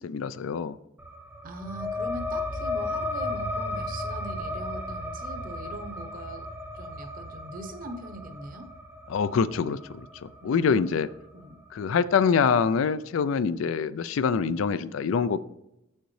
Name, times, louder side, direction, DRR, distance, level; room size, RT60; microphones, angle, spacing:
voice 1, 0.0-0.8 9.1-11.1 11.7-15.4, left 6 dB, 70° left, 15 dB, 0.4 m, -25 dB
sound 1, 1.0-12.1, left 2 dB, 10° right, 0.8 m, -35 dB
voice 2, 1.4-6.5 6.7-8.7 10.4-10.8 11.3-11.6, right 1 dB, 45° right, 8 dB, 0.8 m, -41 dB
6.9 x 6.4 x 3.2 m, 0.86 s
head